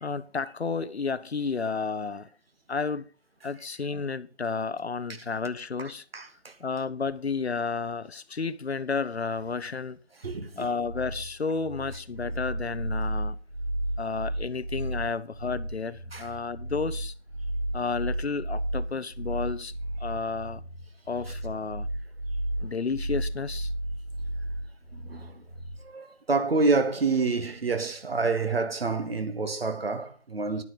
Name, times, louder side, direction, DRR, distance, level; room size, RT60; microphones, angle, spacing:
voice 1, 0.0-2.3 2.7-3.1 3.4-6.0 6.6-10.0 10.6-13.4 14.0-17.1 17.7-19.7 20.0-20.6 21.1-21.9 22.6-23.7, left 4 dB, 65° left, 0.8 m, -31 dB
voice 2, 5.8-6.5 10.2-10.7 16.1-16.3 24.9-25.4 25.8-30.6, right 3 dB, 55° right, 1.9 m, -28 dB
sound 1, 10.8-25.8, right 1 dB, 15° left, 0.8 m, -33 dB
11.0 x 9.4 x 5.0 m
figure-of-eight pair, 170°, 36 cm